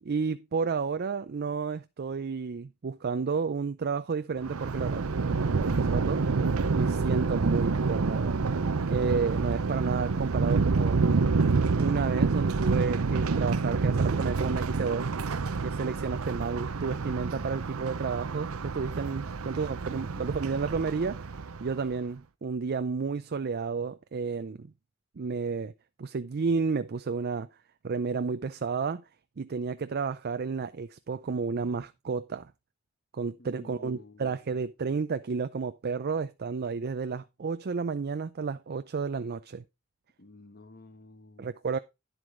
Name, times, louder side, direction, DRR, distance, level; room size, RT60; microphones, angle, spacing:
voice 1, 0.0-5.1 5.5-6.2 6.7-8.4 8.9-11.0 11.8-15.1 15.6-21.3 21.6-24.7 25.2-25.7 26.0-27.5 27.8-29.0 29.4-32.5 33.1-39.6 41.4-41.8, right 5 dB, 50° right, 0.5 m, -31 dB
Thunder, 4.4-21.8, right 4 dB, 85° right, 0.7 m, -28 dB
voice 2, 19.9-20.3 33.4-34.3 40.2-41.5, left 2 dB, 45° left, 1.3 m, -52 dB
10.5 x 7.7 x 3.7 m
head